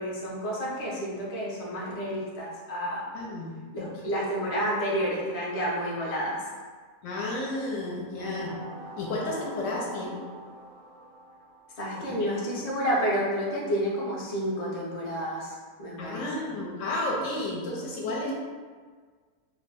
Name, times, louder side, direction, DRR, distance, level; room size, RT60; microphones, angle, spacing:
voice 1, 0.0-3.1 3.7-6.4 11.8-16.2, equal, 45° left, -6 dB, 0.5 m, -30 dB
voice 2, 3.1-3.9 7.0-8.5 9.0-10.2 12.0-12.4 16.0-18.3, left 2 dB, 70° left, -3 dB, 0.9 m, -32 dB
sound 1, 8.2-12.1, right 2 dB, 60° right, 0.6 m, -45 dB
2.6 x 2.0 x 3.5 m, 1.5 s
omnidirectional pair, 1.5 m